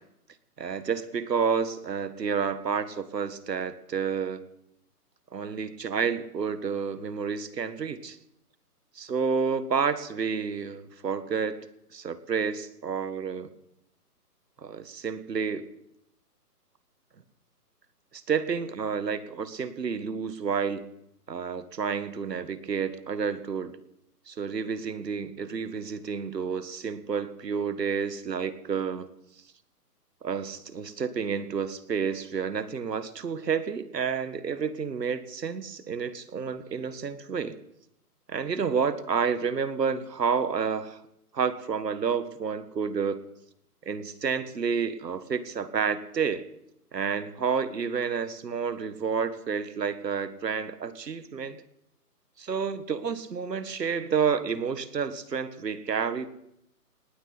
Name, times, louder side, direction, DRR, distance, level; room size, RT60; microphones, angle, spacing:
voice 1, 0.6-4.4 5.3-8.2 8.9-11.6 11.9-13.5 14.6-15.6 18.1-20.9 21.3-23.8 24.3-29.1 30.2-37.5 38.3-41.0 41.3-43.2 43.8-46.4 46.9-51.6 52.4-56.3, right 6 dB, 85° right, 12 dB, 1.7 m, -30 dB
18.5 x 18.0 x 4.1 m, 0.78 s
hypercardioid pair, 175°, 48 cm